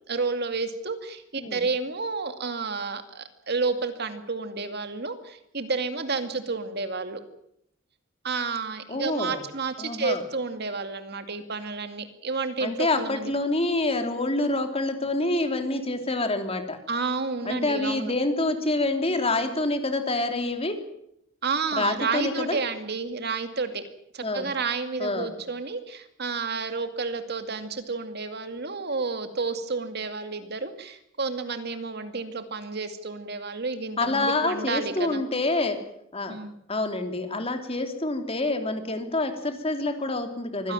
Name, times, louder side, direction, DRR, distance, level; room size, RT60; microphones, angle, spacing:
voice 1, 0.1-7.2 8.2-13.3 16.9-18.1 21.4-23.8 24.1-35.2 36.3-36.5 40.6-40.7, right 4 dB, 55° right, 9 dB, 2.3 m, -30 dB
voice 2, 8.9-9.4 9.8-10.2 12.6-16.8 17.4-20.8 21.7-22.6 24.2-24.5 25.0-25.3 34.0-35.8 36.1-36.4 36.7-40.7, left 2 dB, 30° left, 7 dB, 3.0 m, -27 dB
24.5 x 16.5 x 9.1 m, 0.75 s
head